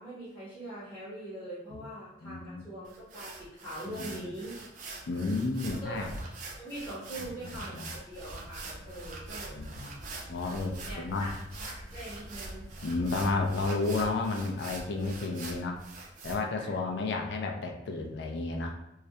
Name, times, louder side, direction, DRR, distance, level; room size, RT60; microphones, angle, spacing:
voice 1, 0.0-4.6 5.7-6.2 6.6-9.6 10.8-12.7 16.6-16.7, right 1 dB, 10° left, -12 dB, 0.7 m, -42 dB
voice 2, 2.2-2.6 4.0-4.2 5.1-6.1 7.2-7.9 9.5-9.9 10.3-11.3 12.8-15.8 16.2-18.8, left 3 dB, 70° left, 2 dB, 0.4 m, -32 dB
sound 1, 2.9-16.4, right 3 dB, 40° right, 0.3 m, -44 dB
sound 2, 8.1-13.6, equal, 85° right, 0.8 m, -48 dB
2.3 x 2.0 x 2.7 m, 0.82 s
head